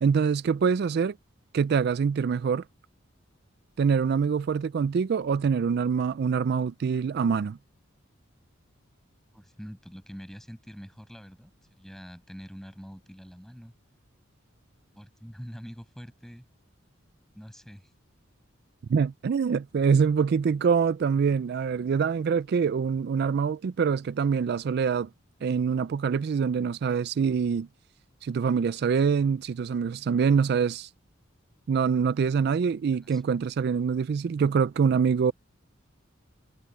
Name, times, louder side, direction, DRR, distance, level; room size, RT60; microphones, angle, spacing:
voice 1, 0.0-1.1 1.5-2.6 3.8-7.6 18.9-25.1 25.4-27.7 28.2-30.9 31.7-35.3, right 6 dB, 55° right, 0.3 m, -25 dB
voice 2, 9.3-13.7 14.9-16.5 17.3-17.9 32.9-33.4, equal, ahead, 7.3 m, -45 dB
head